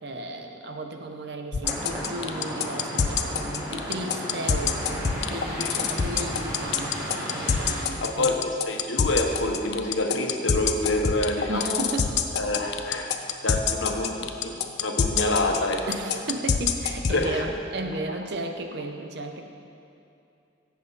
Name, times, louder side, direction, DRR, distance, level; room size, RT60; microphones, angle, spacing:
voice 1, 0.0-8.3 11.5-12.2 15.9-19.4, right 2 dB, 60° right, 4 dB, 0.9 m, -34 dB
sound 1, 1.5-17.2, left 7 dB, 60° left, 0.6 m, -24 dB
sound 2, 1.6-7.8, equal, 15° right, 1.5 m, -34 dB
voice 2, 8.0-11.8 12.3-13.1 13.4-15.8 17.1-17.5, left 2 dB, 90° left, 3 dB, 1.1 m, -27 dB
16.5 x 7.6 x 4.1 m, 2.7 s
head